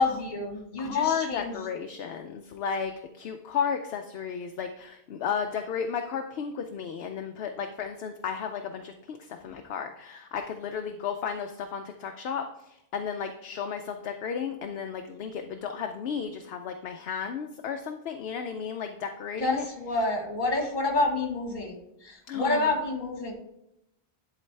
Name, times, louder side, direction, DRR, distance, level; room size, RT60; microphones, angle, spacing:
voice 1, 0.0-1.5 19.4-23.3, left 2 dB, 50° left, 2 dB, 1.6 m, -28 dB
voice 2, 0.8-19.6 22.3-22.7, left 7 dB, 75° left, 5 dB, 0.8 m, -33 dB
11.0 x 4.1 x 3.3 m, 0.83 s
omnidirectional pair, 1.1 m